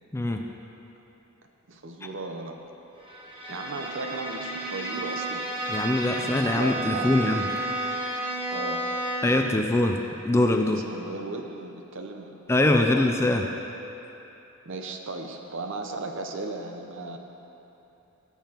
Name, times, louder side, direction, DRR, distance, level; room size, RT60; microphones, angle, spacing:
voice 1, 0.1-0.4 5.7-7.4 9.2-10.0 10.2-10.8 12.5-13.5, left 2 dB, 10° left, 3 dB, 0.3 m, -23 dB
voice 2, 1.7-2.5 3.5-5.4 5.7-5.8 6.0-7.2 8.5-8.8 10.6-12.3 12.9-13.1 14.6-17.2, right 3 dB, 60° right, 4 dB, 0.7 m, -36 dB
Bowed string instrument, 3.0-9.5, right 1 dB, 25° right, 1.2 m, -32 dB
16.0 x 7.0 x 2.9 m, 3.0 s
head